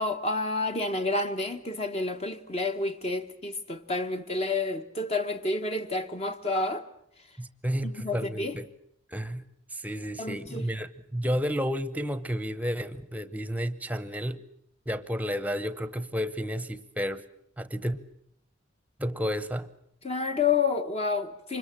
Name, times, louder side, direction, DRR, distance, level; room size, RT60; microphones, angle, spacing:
voice 1, 0.0-6.8 8.0-8.5 10.2-10.6 20.0-21.6, left 3 dB, 30° left, 1.0 m, -29 dB
voice 2, 7.4-8.7 9.1-9.4 9.7-14.4 14.9-17.2 17.6-18.0 19.0-19.7, equal, 5° right, 0.9 m, -31 dB
25.0 x 21.5 x 7.4 m
head